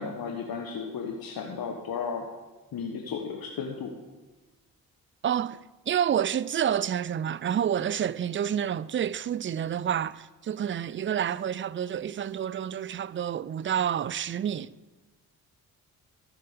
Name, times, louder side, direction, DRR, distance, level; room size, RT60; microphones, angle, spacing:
voice 1, 0.0-2.2 2.7-3.9, left 5 dB, 65° left, 1.2 m, -34 dB
voice 2, 5.2-5.6 5.9-14.8, right 9 dB, 30° right, 0.4 m, -29 dB
14.0 x 6.1 x 4.9 m
supercardioid pair, 45°, 38 cm